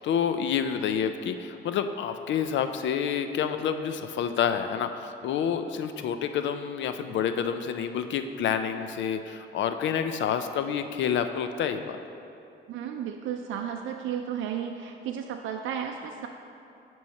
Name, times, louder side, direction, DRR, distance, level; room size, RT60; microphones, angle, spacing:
voice 1, 0.0-12.0, left 8 dB, 70° left, 8 dB, 0.4 m, -28 dB
voice 2, 12.7-16.3, right 8 dB, 75° right, 3 dB, 0.4 m, -33 dB
8.4 x 3.1 x 6.3 m, 2.6 s
cardioid pair, 90°, 20 cm